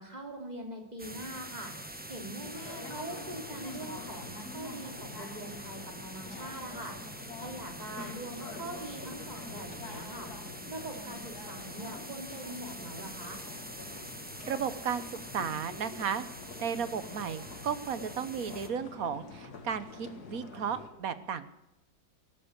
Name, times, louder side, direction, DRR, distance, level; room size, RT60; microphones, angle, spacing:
voice 1, 0.0-1.7 2.1-7.0 7.4-13.4, right 1 dB, 25° right, 3 dB, 3.0 m, -43 dB
sound 1, 1.0-18.7, right 1 dB, 5° right, 1.0 m, -45 dB
sound 2, 2.4-20.9, left 4 dB, 70° left, 2.4 m, -46 dB
voice 2, 14.4-16.3 16.6-21.4, right 7 dB, 60° right, 14 dB, 1.4 m, -34 dB
18.5 x 9.0 x 8.1 m, 0.88 s
omnidirectional pair, 1.7 m